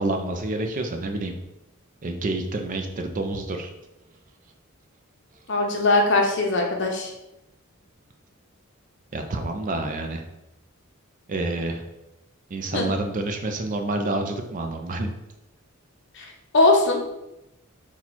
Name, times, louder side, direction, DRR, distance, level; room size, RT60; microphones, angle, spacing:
voice 1, 0.0-1.3 2.0-3.7 9.1-10.2 11.3-11.8 12.5-15.1, right 2 dB, 40° right, 5 dB, 0.4 m, -28 dB
voice 2, 5.5-7.1 12.7-12.8 16.2-16.3 16.5-17.0, left 2 dB, 60° left, 1 dB, 0.7 m, -20 dB
4.4 x 2.3 x 4.1 m, 0.91 s
head